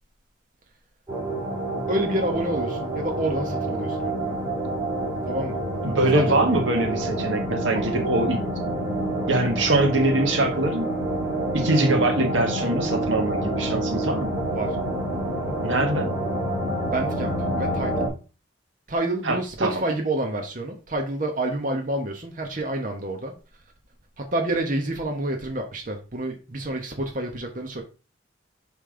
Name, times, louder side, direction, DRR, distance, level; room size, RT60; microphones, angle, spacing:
sound 1, 1.1-18.1, right 1 dB, 15° right, 2.5 m, -27 dB
voice 1, 1.9-4.4 5.3-5.6 6.1-6.4 7.7-7.9 14.5-14.8 16.8-18.1 18.9-23.3 24.2-27.8, right 1 dB, 45° right, 2 dB, 1.1 m, -28 dB
voice 2, 5.8-8.4 8.8-9.0 9.3-10.9 11.5-14.3 15.6-16.1 19.2-19.8, right 2 dB, 85° right, 4 dB, 1.5 m, -23 dB
5.4 x 5.2 x 3.8 m, 0.33 s
head